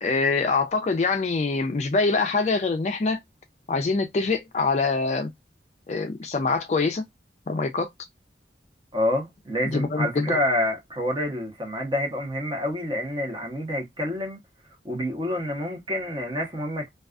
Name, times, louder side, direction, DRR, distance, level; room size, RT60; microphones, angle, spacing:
voice 1, 0.0-3.2 3.7-5.3 5.9-7.0 7.5-7.9 9.7-10.4, left 4 dB, 40° left, 0.3 m, -24 dB
voice 2, 8.9-14.4 14.8-16.9, left 1 dB, 25° right, 0.8 m, -28 dB
2.3 x 2.3 x 2.3 m
head